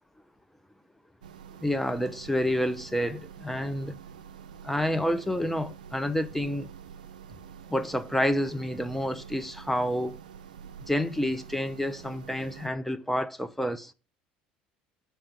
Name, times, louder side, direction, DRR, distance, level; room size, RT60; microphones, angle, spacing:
sound 1, 1.2-12.7, right 8 dB, 85° right, 0.3 m, -47 dB
voice 1, 1.6-4.0 4.6-6.7 7.7-10.2 10.9-13.9, equal, 5° left, 0.6 m, -29 dB
6.2 x 4.5 x 6.2 m
hypercardioid pair, 65°, 4 cm